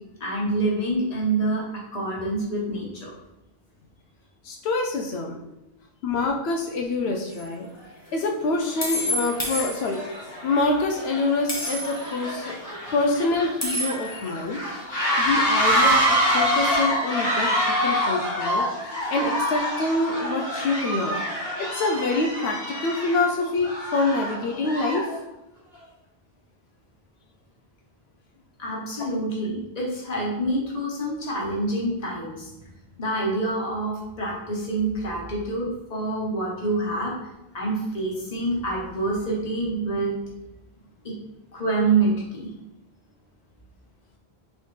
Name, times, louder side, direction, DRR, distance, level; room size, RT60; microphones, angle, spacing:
voice 1, 0.2-1.6 1.9-3.1 14.1-14.2 28.6-32.5 33.0-37.1 37.5-40.1 41.0-41.1 41.5-42.5, right 2 dB, 40° left, -3 dB, 1.2 m, -26 dB
voice 2, 4.4-5.4 6.0-7.7 8.1-10.0 10.4-12.6 12.9-14.6 14.9-21.2 21.6-25.1, left 2 dB, 85° left, 1 dB, 0.8 m, -26 dB
sound 1, 7.3-7.4 8.8-10.2 11.5-12.1 13.6-14.3, left 1 dB, 15° left, 0.9 m, -29 dB
sound 2, 7.8-7.9 8.6-8.8 9.2-25.2, equal, 65° left, 1.5 m, -26 dB
4.1 x 3.7 x 3.2 m, 0.93 s
omnidirectional pair, 1.1 m